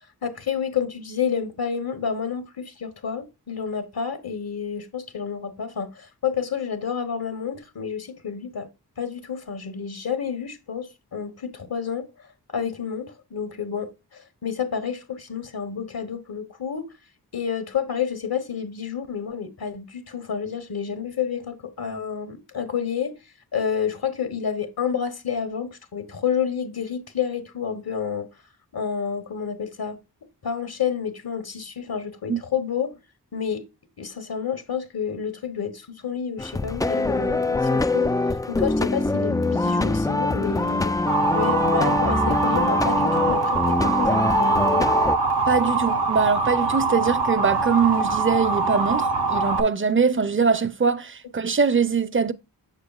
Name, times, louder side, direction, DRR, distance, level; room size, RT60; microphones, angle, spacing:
voice 1, 0.2-8.7 9.0-12.1 12.5-16.9 17.3-23.2 23.5-28.3 28.7-30.0 30.4-32.9 33.3-33.7 34.0-38.2 38.5-40.9 41.3-44.9, left 7 dB, 60° left, 1.2 m, -29 dB
sound 1, 36.4-45.2, left 2 dB, 10° left, 0.3 m, -23 dB
Motor vehicle (road) / Siren, 41.1-49.6, right 3 dB, 70° right, 0.9 m, -23 dB
voice 2, 45.5-52.3, right 5 dB, 30° right, 0.6 m, -22 dB
6.7 x 6.6 x 2.3 m
cardioid pair, 45°, 41 cm